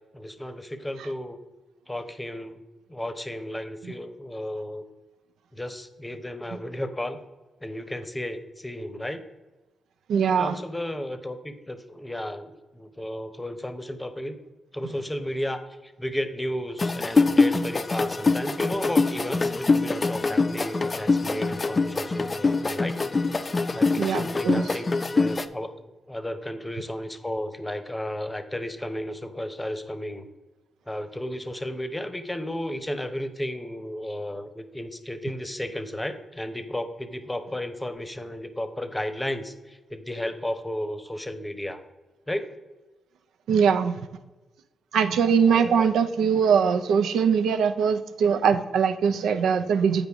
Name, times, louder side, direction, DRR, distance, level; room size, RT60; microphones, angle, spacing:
voice 1, 0.1-1.4 1.9-2.6 2.9-4.8 5.5-7.2 7.6-9.2 10.3-14.4 14.7-23.0 23.7-24.8 25.1-25.7 26.1-30.3 30.9-41.8 42.3-42.5 45.5-45.9, left 1 dB, 10° left, 9 dB, 0.8 m, -33 dB
voice 2, 10.1-10.5 24.0-24.7 43.5-44.0 44.9-50.1, right 6 dB, 90° right, 10 dB, 0.5 m, -22 dB
sound 1, 16.8-25.5, left 3 dB, 35° left, 0.4 m, -24 dB
8.2 x 5.0 x 3.5 m, 1.1 s
cardioid pair, 75°, 0 cm